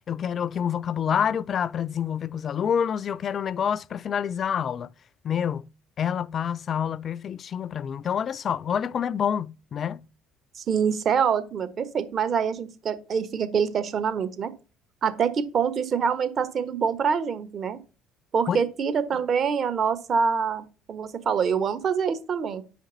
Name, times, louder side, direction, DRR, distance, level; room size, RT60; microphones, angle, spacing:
voice 1, 0.1-4.9 5.2-5.7 6.0-10.1 18.5-18.6, left 8 dB, 50° left, 0.3 m, -27 dB
voice 2, 10.5-14.5 15.0-17.8 18.3-22.6, right 6 dB, 50° right, 1.2 m, -25 dB
7.8 x 5.1 x 4.0 m
hypercardioid pair, 65°, 0 cm